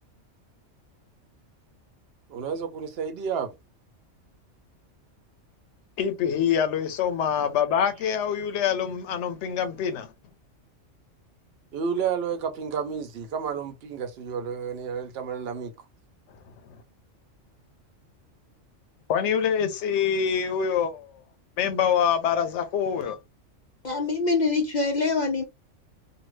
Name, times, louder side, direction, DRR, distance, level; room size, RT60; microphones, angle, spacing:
voice 1, 2.3-3.5 11.7-15.7, right 6 dB, 55° right, 0.9 m, -31 dB
voice 2, 6.0-10.1 16.5-16.6 19.1-21.1 21.6-23.2, left 8 dB, 70° left, 0.9 m, -25 dB
voice 3, 23.8-25.4, left 3 dB, 55° left, 0.5 m, -24 dB
2.7 x 2.4 x 3.1 m
omnidirectional pair, 1.3 m